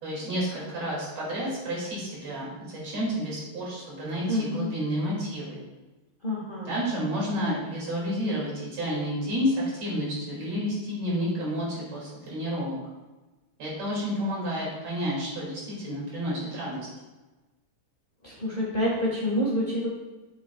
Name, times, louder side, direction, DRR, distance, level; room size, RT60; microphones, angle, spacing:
voice 1, 0.0-5.6 6.7-12.8 13.6-16.9, equal, 50° right, -6 dB, 3.6 m, -30 dB
voice 2, 4.3-4.7 6.2-6.8 18.2-19.9, equal, 50° left, -6 dB, 0.6 m, -28 dB
8.2 x 7.0 x 2.4 m, 1.1 s
omnidirectional pair, 3.9 m